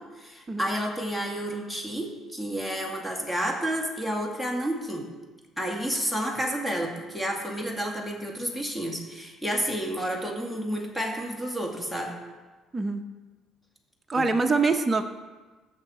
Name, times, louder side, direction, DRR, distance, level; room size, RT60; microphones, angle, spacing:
voice 1, 0.0-5.1 5.6-12.1 14.1-14.3, equal, 10° left, 0 dB, 2.2 m, -30 dB
voice 2, 14.1-15.0, right 4 dB, 25° right, 5 dB, 0.8 m, -24 dB
15.0 x 6.5 x 4.3 m, 1.3 s
cardioid pair, 90°, 0 cm